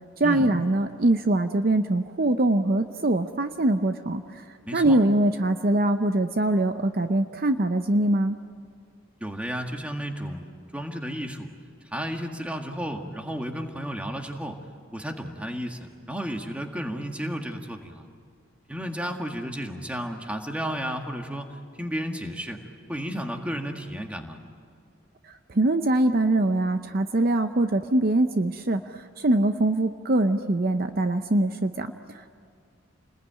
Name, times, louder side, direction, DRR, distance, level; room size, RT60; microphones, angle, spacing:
voice 1, 0.2-4.4 4.7-8.4 25.5-32.3, right 1 dB, 45° right, 8 dB, 0.7 m, -23 dB
voice 2, 4.7-5.0 9.2-11.5 11.8-14.6 14.9-18.0 18.7-22.6 22.9-24.4, equal, 5° right, 3 dB, 1.8 m, -33 dB
29.5 x 20.5 x 9.1 m, 2.3 s
head